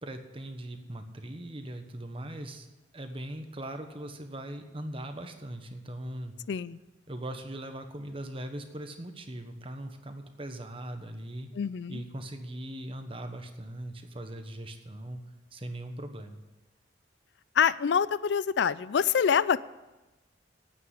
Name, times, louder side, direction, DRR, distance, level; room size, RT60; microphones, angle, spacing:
voice 1, 0.0-2.7 2.9-6.3 7.1-11.5 11.9-15.2 15.5-16.4, right 1 dB, 30° right, 7 dB, 1.2 m, -40 dB
voice 2, 6.5-6.8 11.6-12.0 17.6-19.6, left 7 dB, 65° left, 18 dB, 0.4 m, -25 dB
9.4 x 8.9 x 9.9 m, 1.1 s
head